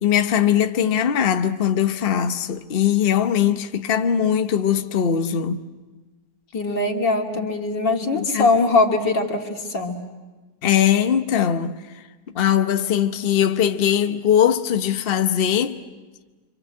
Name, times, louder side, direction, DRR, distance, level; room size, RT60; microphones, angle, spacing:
voice 1, 0.0-5.6 8.1-8.5 10.6-11.8 12.3-15.8, left 9 dB, 40° left, 0.9 m, -20 dB
voice 2, 6.5-10.0, left 3 dB, 85° left, 3.2 m, -21 dB
26.5 x 25.5 x 7.7 m
omnidirectional pair, 1.9 m